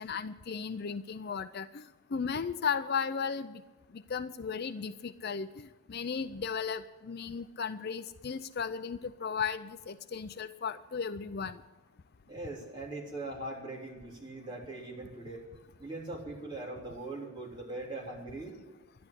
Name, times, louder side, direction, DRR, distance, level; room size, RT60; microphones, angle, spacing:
voice 1, 0.0-1.8 2.1-3.6 4.1-11.6, left 6 dB, 45° left, 12 dB, 0.4 m, -35 dB
voice 2, 12.2-15.4 15.8-18.5, right 2 dB, 20° right, -4 dB, 3.4 m, -41 dB
11.5 x 11.0 x 8.2 m, 1.2 s
head